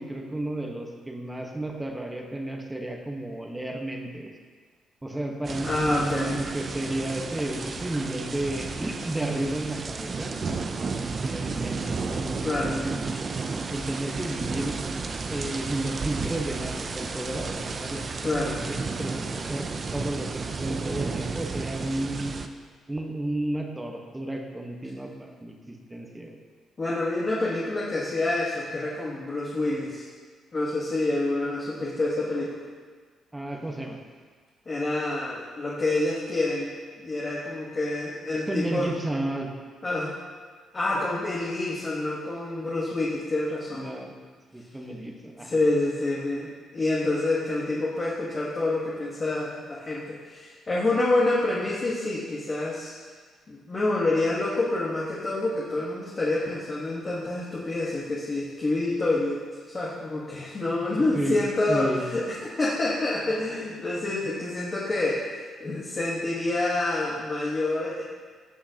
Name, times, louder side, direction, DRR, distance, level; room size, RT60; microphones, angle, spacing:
voice 1, 0.0-4.3 5.0-10.3 11.2-13.0 13.7-14.8 15.3-18.0 18.3-22.4 22.9-26.4 33.3-34.0 38.3-39.5 43.7-44.1 44.5-45.6 61.1-61.4 61.7-62.1, right 1 dB, 15° right, 2 dB, 1.2 m, -32 dB
sound 1, 5.4-22.5, right 4 dB, 40° right, 0.5 m, -32 dB
voice 2, 5.6-6.4 12.4-12.8 18.2-18.6 26.8-30.0 30.5-32.6 34.6-36.7 37.0-38.9 39.8-40.1 40.7-43.9 45.4-52.9 53.5-59.4 59.7-68.0, left 2 dB, 35° left, -6 dB, 1.4 m, -27 dB
15.0 x 5.7 x 2.9 m, 1.6 s
cardioid pair, 90°, 0 cm